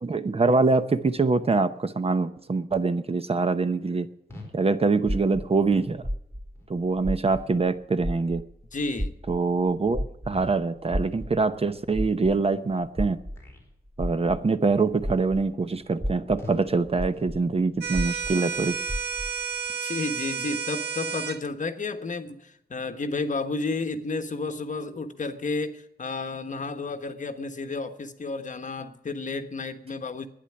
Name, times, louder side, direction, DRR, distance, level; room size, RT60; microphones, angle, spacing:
voice 1, 0.0-4.1 4.5-6.0 6.7-8.4 9.3-13.2 14.0-18.8, right 3 dB, 35° right, 11 dB, 0.8 m, -24 dB
sound 1, 4.3-4.6 5.0-5.3 5.8-6.0 6.5-6.7 7.3-7.6 8.0-8.3 8.8-9.0 9.5-9.7 10.3-10.7 11.1-11.4 11.8-12.0 12.6-12.7 13.3-13.7 14.1-14.4 14.9-15.1 15.6-15.7 16.4-16.7 17.1-17.4, left 2 dB, 15° left, 3.8 m, -47 dB
sound 2, 5.0-7.7 8.0-15.5 15.9-19.4, equal, 5° right, 0.5 m, -33 dB
voice 2, 8.7-9.1 19.8-30.3, left 3 dB, 50° left, 8 dB, 1.2 m, -32 dB
sound 3, 17.8-21.4, right 6 dB, 85° right, 1.0 m, -31 dB
11.5 x 10.0 x 8.5 m, 0.78 s
wide cardioid pair, 145°, 17 cm